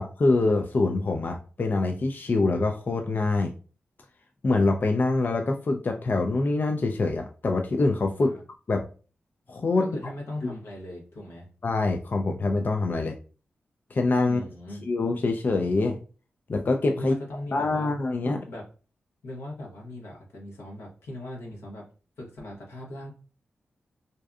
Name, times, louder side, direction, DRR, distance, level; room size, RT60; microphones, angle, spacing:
voice 1, 0.0-3.5 4.4-8.4 8.7-8.9 9.5-9.9 10.4-10.5 11.6-13.2 13.9-14.4 14.9-16.0 16.5-17.1 17.5-18.4, left 3 dB, 45° left, 4 dB, 0.4 m, -25 dB
voice 2, 9.8-11.5 14.2-14.8 16.9-17.9 18.2-18.6 19.2-21.8 22.2-23.2, left 1 dB, 85° left, -2 dB, 0.8 m, -39 dB
2.6 x 2.3 x 2.3 m, 0.37 s
cardioid pair, 45°, 4 cm